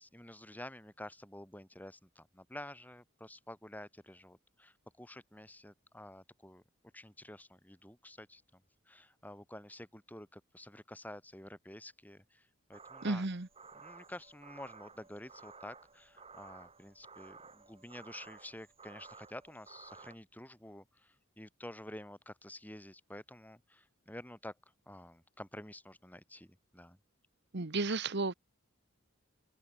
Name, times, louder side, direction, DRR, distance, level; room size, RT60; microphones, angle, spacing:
voice 1, 0.0-6.6 6.9-8.6 8.9-13.2 13.7-24.5 24.9-27.0, left 1 dB, 10° left, 6.4 m, -50 dB
sound 1, 12.7-20.1, right 4 dB, 30° right, 7.1 m, -55 dB
voice 2, 13.0-13.5 27.5-28.3, right 3 dB, 55° right, 1.3 m, -33 dB
open air
head